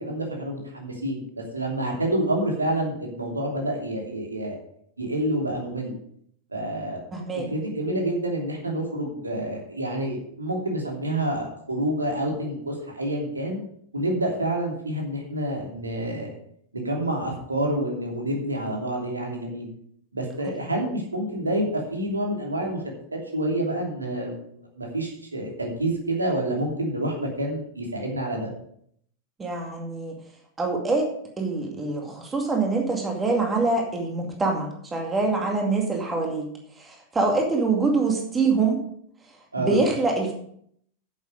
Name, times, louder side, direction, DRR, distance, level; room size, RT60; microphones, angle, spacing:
voice 1, 0.0-4.6 5.0-6.0 6.5-7.0 7.5-13.6 13.9-16.3 16.7-19.7 20.1-22.8 23.1-24.4 24.8-28.5 39.5-39.8, right 1 dB, 80° right, 0 dB, 2.9 m, -28 dB
voice 2, 7.1-7.5 20.5-20.6 29.4-30.2 30.6-31.1 31.4-36.5 36.8-38.8 39.6-40.3, right 3 dB, 15° right, 1 dB, 2.3 m, -25 dB
10.5 x 7.5 x 5.2 m, 0.67 s
figure-of-eight pair, 90°, 0 cm